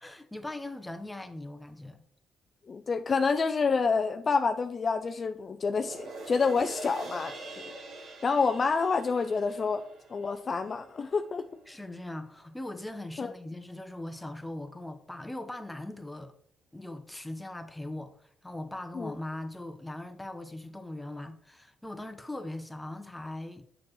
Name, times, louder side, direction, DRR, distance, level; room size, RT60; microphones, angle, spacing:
voice 1, 0.0-2.0 11.7-16.3 16.7-23.7, left 1 dB, 10° left, 0.8 m, -40 dB
voice 2, 2.7-7.4 7.7-9.8 10.1-11.5 13.2-13.3 18.9-19.1, left 4 dB, 40° left, 0.4 m, -28 dB
sound 1, 5.5-12.1 12.6-12.7, right 2 dB, 60° right, 1.6 m, -45 dB
7.0 x 6.1 x 3.1 m
cardioid pair, 90°, 0 cm